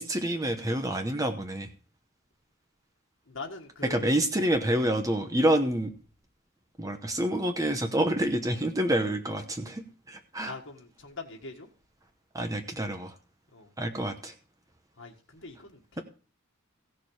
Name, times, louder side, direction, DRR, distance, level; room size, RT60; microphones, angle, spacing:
voice 1, 0.0-1.7 3.8-5.9 6.8-10.5 12.3-13.1 13.8-14.3, right 1 dB, 15° right, 6 dB, 0.9 m, -28 dB
voice 2, 3.3-4.1 5.6-5.7 10.4-11.7 13.5-13.7 15.0-16.0, left 3 dB, 65° left, 1 dB, 1.7 m, -42 dB
16.0 x 6.7 x 4.8 m, 0.38 s
head